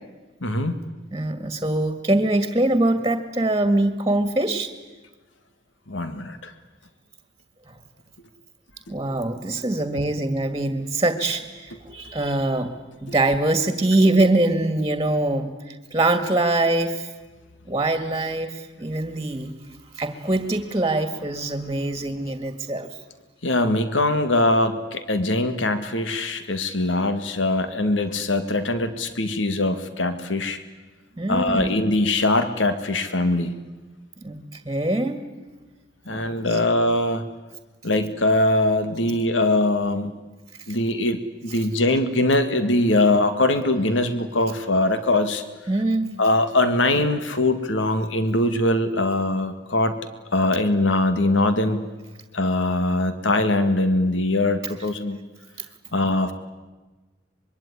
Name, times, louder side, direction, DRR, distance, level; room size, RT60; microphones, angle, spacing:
voice 1, 0.4-0.7 5.9-6.5 13.1-13.2 23.4-30.6 31.3-33.5 36.1-37.2 37.8-40.1 40.7-45.4 46.2-50.0 50.3-51.9 52.3-55.2 55.9-56.3, left 2 dB, 80° left, 10 dB, 2.0 m, -22 dB
voice 2, 1.1-4.7 7.7-7.8 8.9-12.7 13.0-17.1 17.7-19.5 19.9-22.9 31.2-31.7 34.2-35.2 36.1-36.6 45.7-46.2, right 2 dB, 20° right, 9 dB, 2.0 m, -23 dB
25.0 x 23.0 x 9.8 m, 1.2 s
head